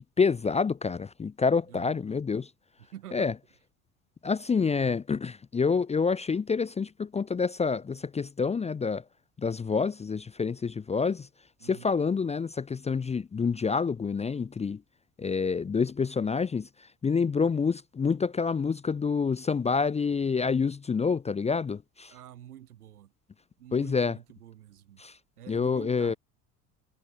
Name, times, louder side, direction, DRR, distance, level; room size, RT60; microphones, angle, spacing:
voice 1, 0.0-2.5 3.1-3.3 4.2-9.0 9.4-11.3 11.6-14.8 15.2-16.7 17.0-22.1 23.7-24.2 25.0-25.2 25.5-26.1, left 5 dB, 15° left, 0.7 m, -27 dB
voice 2, 1.7-2.0 2.8-3.3 11.6-11.9 22.1-23.1 23.6-25.0 25.4-26.2, right 12 dB, 70° right, 2.8 m, -47 dB
figure-of-eight pair, 65°, 46 cm